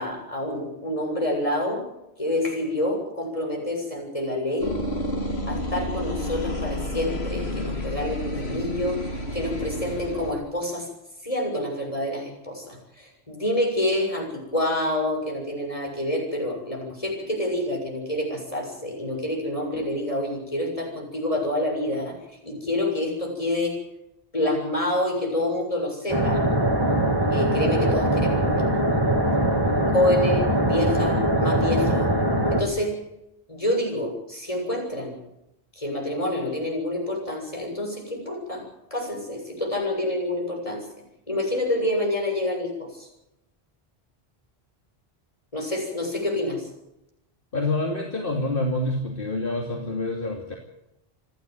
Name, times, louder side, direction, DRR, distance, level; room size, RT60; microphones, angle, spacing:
voice 1, 0.0-1.8 2.2-4.7 5.5-10.9 11.2-22.2 22.4-23.8 24.3-26.5 27.3-28.7 29.8-32.1 32.5-33.0 33.5-35.1 35.8-38.6 38.9-40.9 41.3-43.1 45.5-46.7, left 1 dB, 35° left, 1 dB, 7.3 m, -27 dB
sound 1, 4.6-10.3, left 1 dB, 85° left, 3.1 m, -30 dB
sound 2, 26.1-32.6, right 1 dB, 20° right, 3.1 m, -22 dB
voice 2, 47.5-50.6, left 2 dB, 60° left, 1 dB, 2.9 m, -27 dB
28.5 x 11.5 x 9.5 m, 0.87 s
omnidirectional pair, 1.0 m